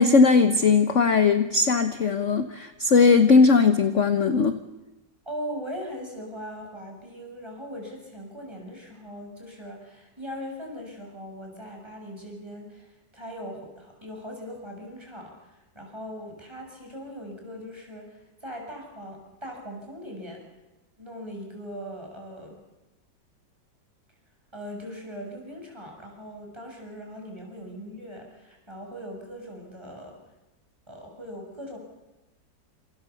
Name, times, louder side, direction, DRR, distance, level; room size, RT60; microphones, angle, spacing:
voice 1, 0.0-4.6, left 4 dB, 45° left, 9 dB, 1.3 m, -19 dB
voice 2, 5.2-20.4 21.0-22.6 24.5-30.2 30.9-31.8, equal, 15° right, 1 dB, 6.5 m, -40 dB
28.0 x 28.0 x 7.1 m, 1.1 s
omnidirectional pair, 2.0 m